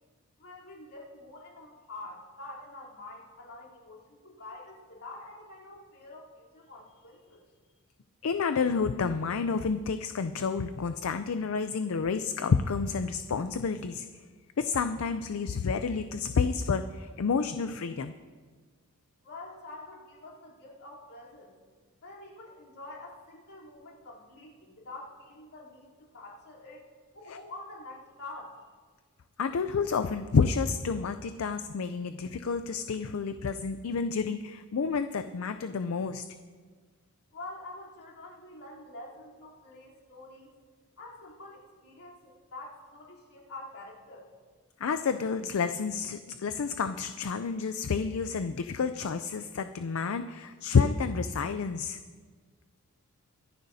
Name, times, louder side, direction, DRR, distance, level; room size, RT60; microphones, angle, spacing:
voice 1, 0.4-7.4 19.2-21.6 22.0-26.8 27.1-28.6 37.3-40.5 41.0-44.3, left 2 dB, 85° left, -5 dB, 3.4 m, -46 dB
voice 2, 8.2-14.1 14.6-18.1 27.3-27.4 29.4-36.2 44.8-52.0, left 5 dB, 65° left, 10 dB, 0.4 m, -29 dB
24.5 x 10.5 x 2.7 m, 1.5 s
head